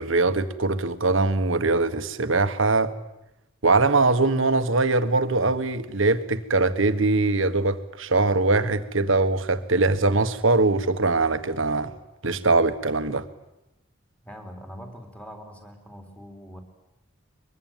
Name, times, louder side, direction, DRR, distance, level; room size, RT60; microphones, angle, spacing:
voice 1, 0.0-2.9 3.6-11.9 12.2-13.3, right 3 dB, 70° right, 1.5 m, -22 dB
voice 2, 14.2-16.6, equal, 5° left, 3.9 m, -42 dB
23.0 x 22.5 x 9.3 m
head